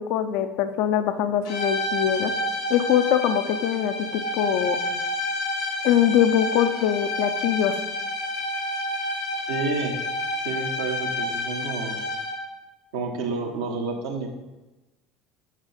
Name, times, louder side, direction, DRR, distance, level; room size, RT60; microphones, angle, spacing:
voice 1, 0.0-2.3 2.7-4.8 5.8-7.8, left 10 dB, 65° left, 10 dB, 0.5 m, -23 dB
sound 1, 1.4-12.6, left 1 dB, 80° left, 1.4 m, -29 dB
voice 2, 9.5-10.0 10.4-12.0 12.9-14.3, right 3 dB, 75° right, 1 dB, 1.1 m, -29 dB
6.3 x 6.2 x 4.1 m, 1.1 s
hypercardioid pair, 70°, 2 cm